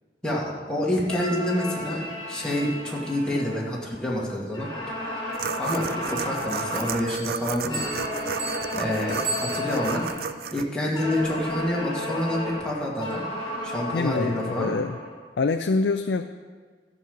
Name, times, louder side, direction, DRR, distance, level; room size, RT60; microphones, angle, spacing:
voice 1, 0.2-4.7 5.5-7.9 8.7-10.0 10.5-13.3 13.6-14.7, left 1 dB, 5° left, -5 dB, 2.0 m, -27 dB
sound 1, 1.0-4.1 4.5-7.1 7.6-10.3 10.9-15.2, left 1 dB, 20° left, 4.1 m, -33 dB
sound 2, 5.3-10.6, right 7 dB, 60° right, 0.4 m, -33 dB
Bell, 7.1-10.1, right 3 dB, 85° right, 3.3 m, -36 dB
voice 2, 13.9-15.0 15.4-16.2, left 4 dB, 70° left, 7 dB, 0.4 m, -25 dB
13.0 x 5.4 x 7.3 m, 1.5 s
head